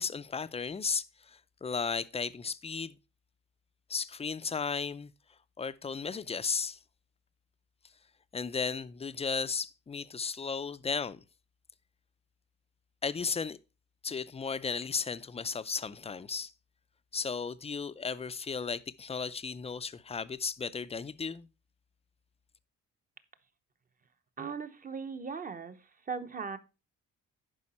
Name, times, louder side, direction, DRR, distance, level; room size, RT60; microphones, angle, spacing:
voice 1, 0.0-2.9 3.9-5.1 5.6-6.8 8.3-11.2 13.0-13.6 14.0-16.5 17.1-21.5, left 5 dB, 20° left, 0.5 m, -35 dB
voice 2, 24.4-25.8 26.1-26.6, right 5 dB, 30° right, 0.9 m, -38 dB
11.0 x 4.8 x 4.2 m
cardioid pair, 90°, 30 cm